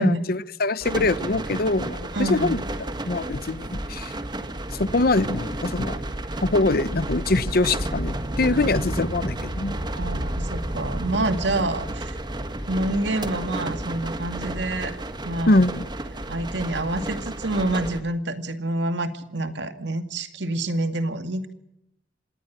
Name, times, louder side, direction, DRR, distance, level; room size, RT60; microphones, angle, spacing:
voice 1, 0.0-2.6 3.0-4.1 4.8-6.0 6.4-9.8 15.5-15.9, left 2 dB, 55° left, 0.9 m, -23 dB
sound 1, 0.8-18.0, right 1 dB, 25° right, 1.6 m, -31 dB
voice 2, 2.1-2.6 9.9-12.2 12.7-14.9 15.2-15.6 16.3-21.5, right 2 dB, 75° right, 2.2 m, -27 dB
26.0 x 19.5 x 6.2 m
head